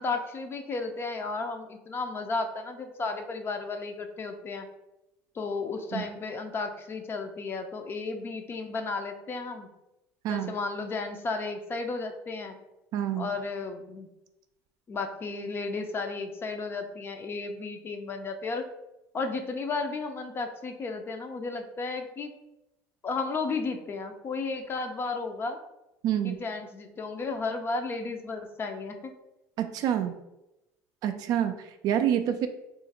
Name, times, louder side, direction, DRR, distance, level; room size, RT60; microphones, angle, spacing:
voice 1, 0.0-4.7 5.3-9.7 10.3-12.6 13.2-14.1 14.9-18.7 19.1-22.3 23.0-25.6 26.2-29.1, left 3 dB, 30° left, 6 dB, 0.5 m, -33 dB
voice 2, 12.9-13.3 26.0-26.4 29.6-30.1 31.0-32.5, right 10 dB, 55° right, 8 dB, 0.4 m, -27 dB
2.8 x 2.5 x 4.0 m, 0.92 s
supercardioid pair, 105°, 8 cm